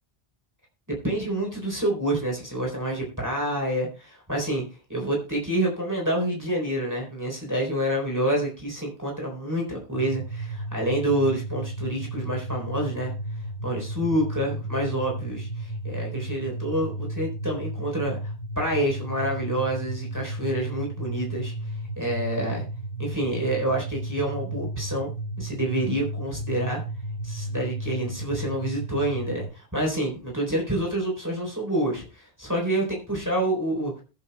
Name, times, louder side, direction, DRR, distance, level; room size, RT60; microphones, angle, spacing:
voice 1, 0.9-4.6 4.9-13.1 13.6-21.5 22.0-22.6 23.0-25.1 25.4-26.8 27.2-32.0 32.4-34.0, right 1 dB, 15° right, -1 dB, 4.0 m, -27 dB
sound 1, 9.9-29.5, right 1 dB, 80° left, 3.0 m, -33 dB
21.0 x 8.5 x 2.3 m, 0.33 s
omnidirectional pair, 1.0 m